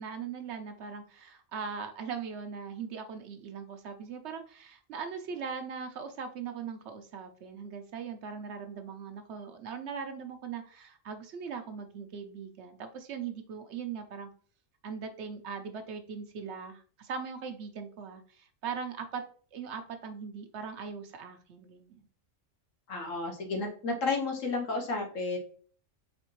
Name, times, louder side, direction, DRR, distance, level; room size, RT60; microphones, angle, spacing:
voice 1, 0.0-14.3 14.8-19.2 19.5-22.1, right 6 dB, 65° right, 6 dB, 0.8 m, -40 dB
voice 2, 22.9-25.4, left 3 dB, 75° left, 2 dB, 1.4 m, -32 dB
4.1 x 3.6 x 3.0 m, 0.43 s
omnidirectional pair, 1.4 m